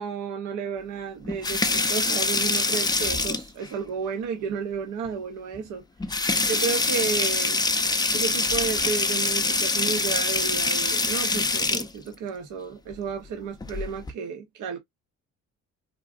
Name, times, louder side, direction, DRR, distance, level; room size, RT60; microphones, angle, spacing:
voice 1, 0.0-7.6 8.1-14.8, right 6 dB, 80° right, 0.7 m, -32 dB
sound 1, 1.3-3.7 5.1-5.2 5.5-5.6 6.0-11.9 13.5-14.1, left 3 dB, 15° left, 0.5 m, -25 dB
3.7 x 2.4 x 2.3 m
cardioid pair, 90°, 30 cm